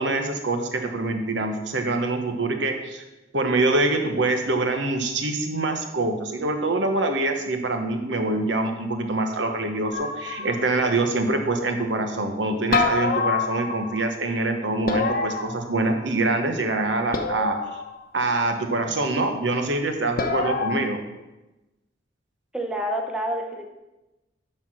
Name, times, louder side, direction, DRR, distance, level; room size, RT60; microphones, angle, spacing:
voice 1, 0.0-3.0 3.3-17.6 18.1-21.0, right 2 dB, 70° right, 5 dB, 1.2 m, -25 dB
sound 1, 9.9-10.8 12.7-14.1 14.9-16.2 17.1-18.0 20.2-20.8, left 4 dB, 50° left, 0.9 m, -26 dB
voice 2, 22.5-23.7, right 1 dB, 5° right, 2 dB, 0.8 m, -28 dB
11.5 x 4.4 x 6.4 m, 1.0 s
head